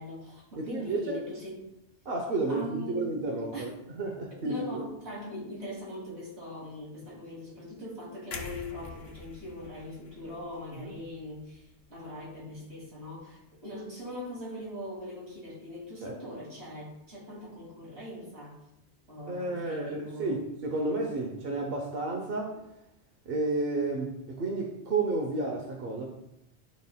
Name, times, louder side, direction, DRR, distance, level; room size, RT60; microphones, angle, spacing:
voice 1, 0.0-1.6 2.5-3.1 3.5-3.7 4.3-18.6 19.1-20.4, left 1 dB, 85° right, -4 dB, 2.7 m, -41 dB
voice 2, 0.6-1.2 2.0-3.7 4.0-4.8 7.1-7.2 10.7-10.8 16.0-16.1 19.3-22.5 23.3-26.1, right 2 dB, 60° right, 2 dB, 1.0 m, -31 dB
sound 1, 8.3-12.3 12.7-12.9, left 5 dB, 70° left, 0.9 m, -46 dB
11.5 x 4.3 x 2.3 m, 0.87 s
omnidirectional pair, 1.1 m